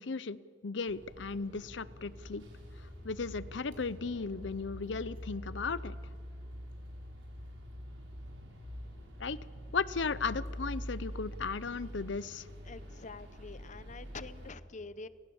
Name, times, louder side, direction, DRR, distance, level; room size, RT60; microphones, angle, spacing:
voice 1, 0.0-2.4 3.0-6.0 9.2-9.4 9.7-12.5, left 4 dB, 70° left, 18 dB, 0.7 m, -36 dB
sound 1, 0.9-14.5, equal, 90° right, 5.2 m, -45 dB
voice 2, 12.6-15.1, left 4 dB, 40° left, 16 dB, 0.8 m, -46 dB
30.0 x 18.0 x 7.1 m, 2.2 s
head